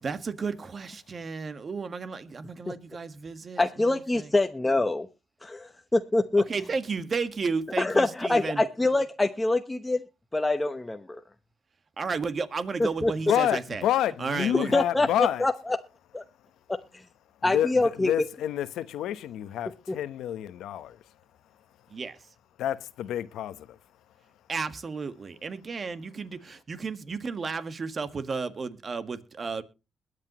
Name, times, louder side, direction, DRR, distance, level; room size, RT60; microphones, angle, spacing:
voice 1, 0.0-4.3 6.5-8.6 12.0-13.8 14.2-14.7 21.9-22.2 24.5-29.6, right 4 dB, 40° right, 1.5 m, -33 dB
voice 2, 3.6-5.1 5.4-6.4 7.8-10.0 10.3-11.2 13.0-13.1 14.7-15.8 16.1-16.2 17.4-18.1 19.9-20.0, left 2 dB, 15° left, 0.9 m, -25 dB
voice 3, 13.3-15.4 17.4-21.0 22.6-23.8, left 11 dB, 85° left, 1.0 m, -28 dB
21.5 x 8.1 x 3.0 m
cardioid pair, 90°, 0 cm